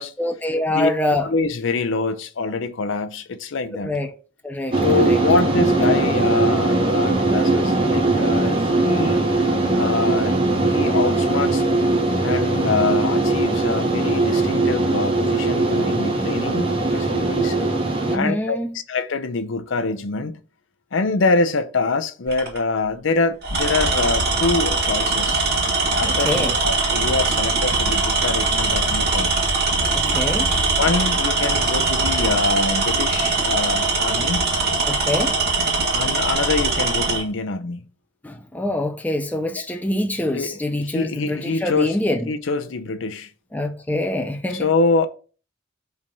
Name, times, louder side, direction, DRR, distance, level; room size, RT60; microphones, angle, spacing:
voice 1, 0.2-1.3 3.8-4.2 4.4-5.2 18.0-18.7 26.0-26.6 29.9-30.5 34.9-35.4 38.2-42.3 43.5-44.7, left 1 dB, 10° left, 0.4 m, -25 dB
voice 2, 1.2-3.9 4.8-9.2 9.7-10.3 10.6-11.6 12.2-17.6 18.1-20.4 20.9-25.4 25.9-29.3 30.8-34.5 35.9-37.9 39.6-39.7 40.3-42.0 42.3-43.3 44.5-45.1, left 3 dB, 65° left, 0.6 m, -25 dB
sound 1, 4.7-18.2, right 2 dB, 25° right, 1.0 m, -20 dB
Tools, 22.3-22.6 23.4-37.2, right 3 dB, 50° right, 1.7 m, -21 dB
5.3 x 3.4 x 5.3 m
head